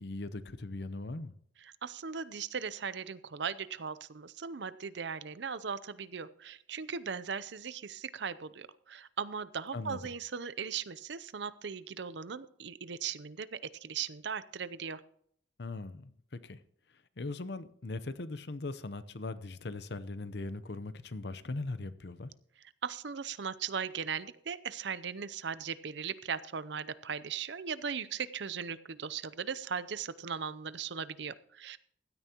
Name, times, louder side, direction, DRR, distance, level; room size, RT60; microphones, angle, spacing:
voice 1, 0.0-1.3 9.7-10.1 15.6-16.6 17.2-22.3, left 2 dB, 60° left, 0.8 m, -40 dB
voice 2, 1.8-15.0 22.8-31.8, right 6 dB, 70° right, 0.6 m, -38 dB
16.0 x 12.5 x 2.9 m
head